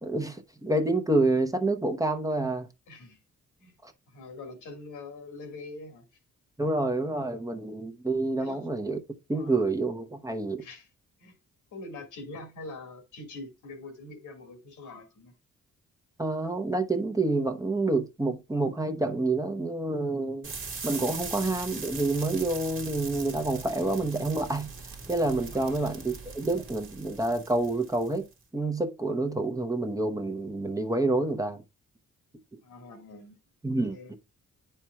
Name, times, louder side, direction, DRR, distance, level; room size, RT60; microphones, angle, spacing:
voice 1, 0.0-2.7 3.8-3.9 6.6-9.0 9.3-10.6 16.2-20.5 20.8-28.3 28.5-31.6 33.6-34.2, right 2 dB, 10° right, 0.8 m, -28 dB
voice 2, 2.9-3.2 3.6-3.7 4.1-6.1 8.4-8.6 9.3-9.6 10.6-10.9 11.2-11.4 11.7-15.3 25.5-25.8 32.6-33.4 33.9-34.1, left 2 dB, 85° left, 1.9 m, -44 dB
sound 1, 20.4-28.3, right 4 dB, 40° right, 1.4 m, -41 dB
9.6 x 4.5 x 2.3 m
cardioid pair, 75°, 31 cm